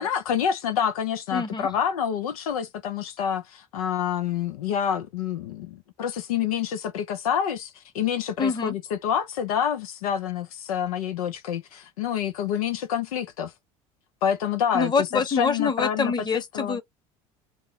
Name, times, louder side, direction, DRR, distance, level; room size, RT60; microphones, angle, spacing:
voice 1, 0.0-13.5 14.2-16.1 16.5-16.8, left 8 dB, 85° left, 0.5 m, -27 dB
voice 2, 1.3-1.7 8.4-8.7 14.7-16.8, left 5 dB, 25° left, 1.0 m, -25 dB
3.2 x 2.0 x 3.7 m
hypercardioid pair, 80°, 18 cm